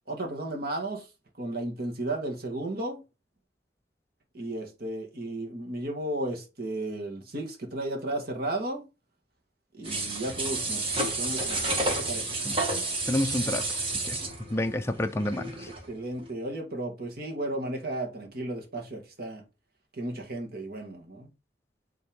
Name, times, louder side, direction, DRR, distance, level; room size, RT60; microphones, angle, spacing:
voice 1, 0.1-1.1 1.4-3.0 4.3-8.8 9.7-12.4 15.9-19.4 19.9-21.3, right 1 dB, 55° right, 1.9 m, -34 dB
sound 1, 9.8-15.9 16.2-16.3, right 2 dB, 30° right, 1.9 m, -30 dB
voice 2, 13.1-13.7 14.0-14.2 14.5-15.7, left 1 dB, 15° left, 0.4 m, -29 dB
8.6 x 3.6 x 3.6 m
head